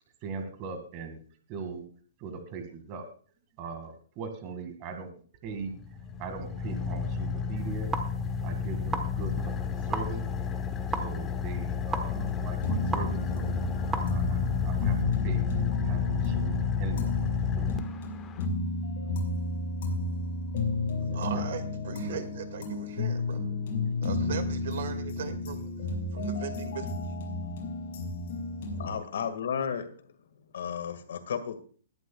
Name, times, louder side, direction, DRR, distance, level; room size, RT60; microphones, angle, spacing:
voice 1, 0.2-1.2 1.5-1.8 2.2-3.1 3.6-5.1 5.4-5.7 6.2-7.9 8.4-10.2 11.0-13.6 14.1-15.0 15.2-15.5 15.8-17.3 17.5-17.7 21.0-21.4 22.0-22.2 24.3-24.4, right 5 dB, 30° right, 7 dB, 2.0 m, -40 dB
Car / Idling, 5.5-18.5, left 6 dB, 15° left, 0.9 m, -31 dB
sound 1, 7.5-15.0, right 3 dB, 10° right, 1.2 m, -39 dB
sound 2, 12.1-28.9, left 2 dB, 55° left, 5.6 m, -32 dB
voice 2, 21.1-23.5 24.0-25.7 26.1-27.0 27.4-27.5, right 8 dB, 65° right, 9 dB, 2.0 m, -39 dB
voice 3, 28.7-30.1 30.5-31.6, left 7 dB, 75° left, 9 dB, 1.8 m, -33 dB
20.5 x 11.0 x 2.3 m, 0.43 s
hypercardioid pair, 165°, 0 cm